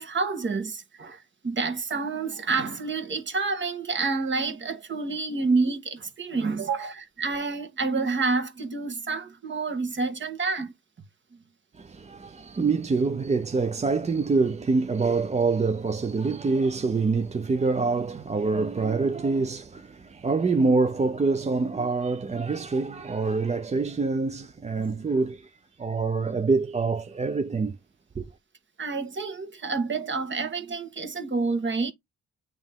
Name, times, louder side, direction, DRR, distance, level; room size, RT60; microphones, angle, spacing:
voice 1, 0.0-10.7 24.8-25.0 28.8-31.9, right 4 dB, 40° right, 1.7 m, -28 dB
voice 2, 11.8-25.5 25.8-27.8 28.2-28.3, right 4 dB, 20° right, 0.6 m, -25 dB
8.6 x 3.1 x 3.7 m
cardioid pair, 90°, 30 cm